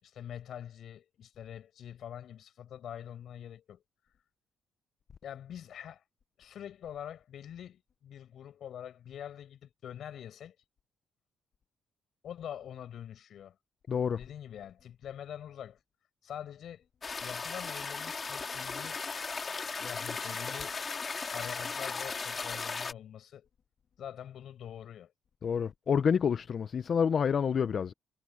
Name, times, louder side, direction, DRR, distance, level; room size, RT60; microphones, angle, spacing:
voice 1, 0.0-3.8 5.2-6.0 6.4-10.6 12.2-13.6 14.1-15.8 16.2-16.8 17.2-19.0 19.8-20.8 21.3-23.5 24.0-25.1, left 10 dB, 65° left, 7.8 m, -45 dB
voice 2, 13.9-14.2 25.4-27.9, left 7 dB, 50° left, 0.7 m, -28 dB
sound 1, 17.0-22.9, left 4 dB, 35° left, 2.4 m, -37 dB
cardioid pair, 90°, 0 cm